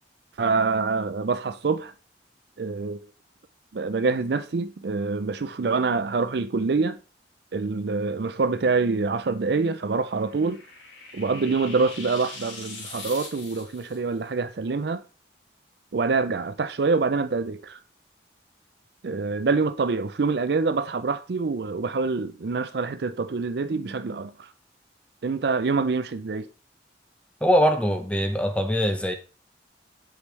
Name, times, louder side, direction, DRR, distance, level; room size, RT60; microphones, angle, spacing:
voice 1, 0.4-1.9 2.6-3.0 3.7-7.0 7.5-10.6 11.1-15.0 15.9-17.8 19.0-24.5 25.2-26.5, right 4 dB, 60° right, 0.5 m, -25 dB
sound 1, 9.8-14.0, left 3 dB, 85° left, 2.7 m, -41 dB
voice 2, 27.4-29.1, equal, 5° left, 0.7 m, -22 dB
8.2 x 5.1 x 3.2 m
head